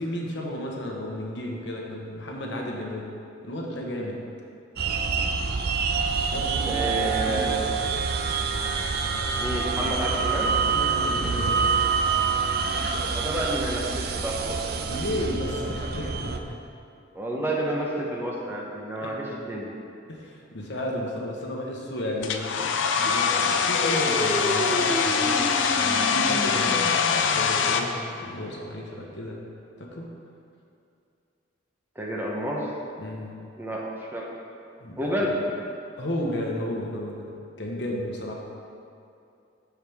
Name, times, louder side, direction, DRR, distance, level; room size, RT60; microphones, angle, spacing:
voice 1, 0.0-3.1 3.4-4.2 6.3-7.8 10.7-11.7 14.9-16.6 17.7-17.8 19.0-19.1 20.1-29.4 29.8-30.1 33.0-33.3 34.8-35.3 36.0-37.3 37.6-38.4, left 1 dB, 65° left, -1 dB, 1.1 m, -33 dB
sound 1, 4.8-16.4, right 5 dB, 55° right, 0.5 m, -26 dB
voice 2, 6.6-7.6 9.4-10.5 13.0-14.6 17.1-19.7 32.0-32.7 33.6-34.3 35.0-35.4, right 1 dB, 10° right, -3 dB, 0.9 m, -30 dB
Domestic sounds home sounds, 22.2-27.8, left 6 dB, 80° left, 0.5 m, -23 dB
sound 2, 23.7-28.6, equal, 20° left, 1.1 m, -32 dB
12.5 x 4.8 x 3.5 m, 2.6 s
head